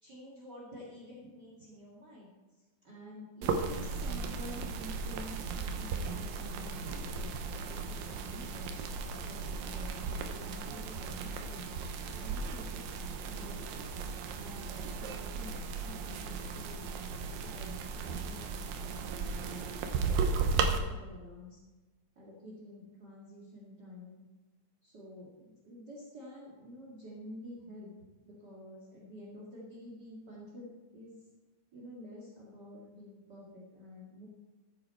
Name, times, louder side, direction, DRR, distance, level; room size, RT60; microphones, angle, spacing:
voice 1, 0.0-2.3 2.8-11.6 12.1-13.9 14.3-16.9 17.4-18.5 18.8-21.6 22.1-24.2 24.8-27.9 28.2-31.1 31.7-34.3, left 1 dB, 55° right, -4 dB, 1.1 m, -49 dB
sound 1, 3.4-20.8, right 5 dB, 90° right, 1.9 m, -36 dB
13.5 x 9.4 x 4.4 m, 1.2 s
omnidirectional pair, 5.4 m